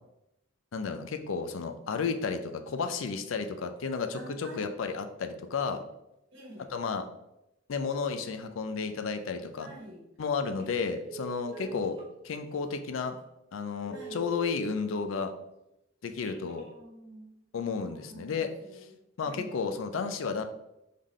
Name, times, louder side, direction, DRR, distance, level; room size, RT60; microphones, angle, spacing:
voice 1, 0.7-5.8 6.7-7.1 7.7-9.7 10.2-12.0 12.2-13.2 13.5-15.3 16.0-16.6 17.5-18.5 19.2-20.4, left 5 dB, 85° left, 8 dB, 0.4 m, -32 dB
voice 2, 4.1-4.7 6.3-6.7 9.6-10.0 11.5-11.9 13.9-14.2 16.4-17.3 17.8-19.0 19.2-19.6, right 1 dB, 70° right, -3 dB, 1.4 m, -48 dB
Telephone, 10.4-10.7 11.0-12.1 12.6-12.7 13.2-13.3 13.7-14.8 16.1-16.7, right 5 dB, 30° right, 1.0 m, -43 dB
3.8 x 3.7 x 3.1 m, 0.88 s
head